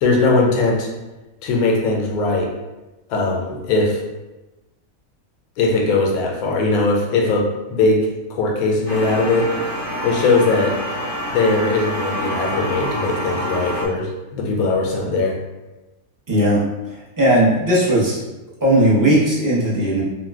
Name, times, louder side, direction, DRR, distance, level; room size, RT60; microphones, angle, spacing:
voice 1, 0.0-0.9 1.4-2.5 3.1-4.0 5.6-9.5 10.0-10.7 11.3-15.4, left 3 dB, 90° left, 0 dB, 1.1 m, -19 dB
sound 1, 8.9-13.9, equal, 50° left, 0.6 m, -27 dB
voice 2, 16.3-16.6 17.2-18.2 18.6-20.0, right 1 dB, 20° right, -8 dB, 0.6 m, -16 dB
3.9 x 2.2 x 2.3 m, 1.1 s
omnidirectional pair, 1.5 m